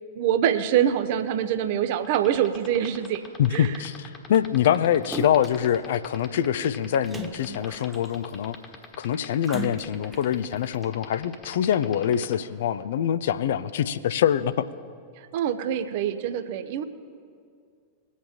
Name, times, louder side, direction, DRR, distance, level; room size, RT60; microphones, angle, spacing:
voice 1, 0.2-3.8 15.2-16.8, right 10 dB, 50° right, 11 dB, 0.7 m, -25 dB
sound 1, 2.0-12.3, left 6 dB, 25° left, 1.4 m, -43 dB
voice 2, 3.4-8.6 9.0-14.5, left 10 dB, 60° left, 14 dB, 0.4 m, -24 dB
Splash splatter, 5.1-5.7 7.1-8.3 9.4-10.2 10.8-10.9, right 4 dB, 10° right, 0.7 m, -37 dB
21.5 x 8.4 x 2.9 m, 2.2 s
figure-of-eight pair, 90°, 0 cm